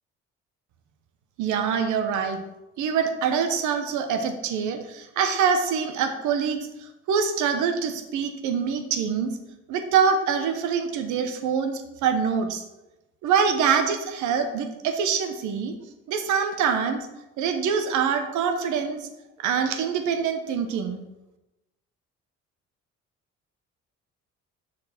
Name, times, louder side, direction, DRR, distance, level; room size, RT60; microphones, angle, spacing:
voice 1, 1.4-2.4 2.8-6.6 7.1-9.4 9.7-12.6 13.2-15.7 16.1-17.1 17.4-19.1 19.4-21.0, right 6 dB, 80° right, 7 dB, 0.9 m, -25 dB
6.3 x 4.3 x 5.8 m, 0.98 s
supercardioid pair, 65°, 29 cm